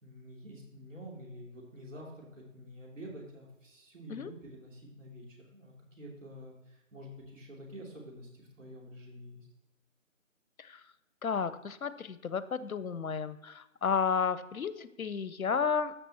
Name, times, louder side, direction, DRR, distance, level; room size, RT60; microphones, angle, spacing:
voice 1, 0.0-5.2 5.5-9.5, equal, 65° right, -2 dB, 3.2 m, -48 dB
voice 2, 11.2-15.9, left 6 dB, 90° left, 14 dB, 0.7 m, -32 dB
13.5 x 5.9 x 3.0 m, 0.91 s
figure-of-eight pair, 170°, 41 cm